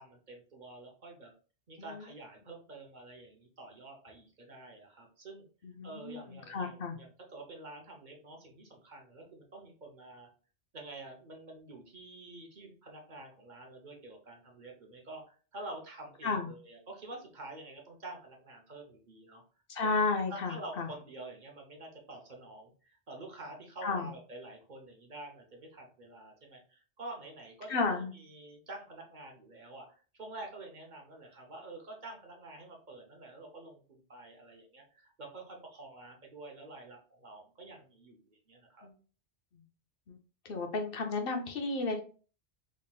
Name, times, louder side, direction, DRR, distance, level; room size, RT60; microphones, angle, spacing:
voice 1, 0.0-1.3 1.7-5.5 5.8-10.3 10.7-19.4 19.8-19.9 20.3-38.9, right 2 dB, 45° right, 1 dB, 0.8 m, -48 dB
voice 2, 5.6-7.0 16.2-16.5 19.7-20.9 23.8-24.1 27.7-28.1 38.8-38.9 40.1-40.2 40.4-42.0, left 4 dB, 60° left, 4 dB, 0.8 m, -33 dB
3.8 x 3.6 x 2.3 m, 0.39 s
omnidirectional pair, 1.1 m